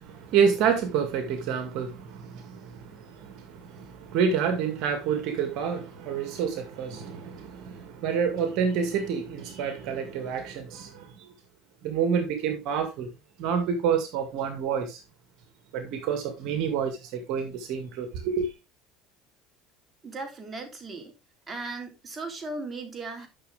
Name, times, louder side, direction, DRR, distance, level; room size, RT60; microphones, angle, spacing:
voice 1, 0.0-11.3 11.8-13.1 13.4-15.0 15.7-18.5, right 7 dB, 65° right, 2.1 m, -28 dB
voice 2, 20.0-21.1 21.5-23.3, right 3 dB, 25° right, 3.4 m, -37 dB
11.5 x 6.5 x 3.5 m
supercardioid pair, 110°, 0 cm